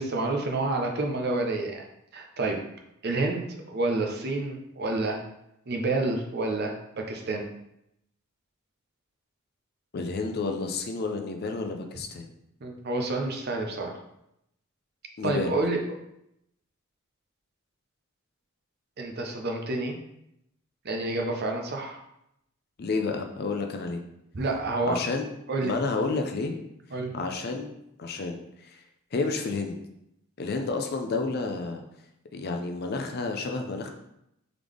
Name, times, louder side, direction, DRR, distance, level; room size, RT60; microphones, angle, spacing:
voice 1, 0.0-1.8 2.1-2.6 3.0-5.2 5.7-7.5 12.6-14.0 15.2-15.8 19.0-20.0 20.8-22.0 24.3-25.0 25.5-25.7 26.9-27.1, right 2 dB, 45° right, 2 dB, 0.6 m, -29 dB
voice 2, 9.9-12.3 15.2-15.6 22.8-24.0 24.9-25.3 25.6-26.6 27.1-27.7 28.0-28.4 28.6-28.8 29.1-29.8 30.4-31.8 32.3-33.9, left 3 dB, 45° left, 4 dB, 0.4 m, -30 dB
3.7 x 3.3 x 3.5 m, 0.80 s
head